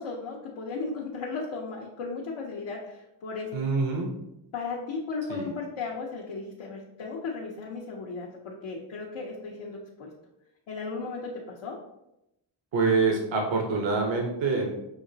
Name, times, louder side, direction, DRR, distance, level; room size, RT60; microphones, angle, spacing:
voice 1, 0.0-3.6 4.5-10.1 10.7-11.8, left 4 dB, 90° left, -4 dB, 0.8 m, -35 dB
voice 2, 3.5-4.1 5.3-5.5 12.7-14.7, right 4 dB, 65° right, 2 dB, 0.8 m, -26 dB
6.1 x 2.9 x 2.7 m, 0.87 s
cardioid pair, 60°, 48 cm